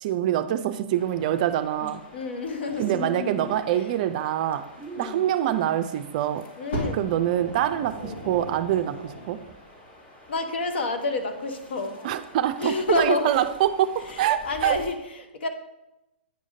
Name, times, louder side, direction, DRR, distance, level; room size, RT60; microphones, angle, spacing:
voice 1, 0.0-2.0 2.8-4.7 5.0-6.5 6.9-9.4 12.0-14.8, right 11 dB, 45° right, 9 dB, 0.3 m, -25 dB
sound 1, 0.9-14.9, left 3 dB, 25° left, 1.3 m, -45 dB
voice 2, 2.1-3.0 3.7-3.9 5.0-5.3 6.6-7.1 8.0-8.3 10.3-12.0 12.6-13.3 14.0-15.5, left 2 dB, 70° left, 6 dB, 0.9 m, -29 dB
sound 2, 2.7-3.6 4.8-5.7, right 2 dB, 10° left, 0.6 m, -40 dB
Fire, 6.7-9.5 10.4-10.5, right 1 dB, 85° left, 2.4 m, -36 dB
9.1 x 4.9 x 2.7 m, 0.94 s
hypercardioid pair, 135°, 6 cm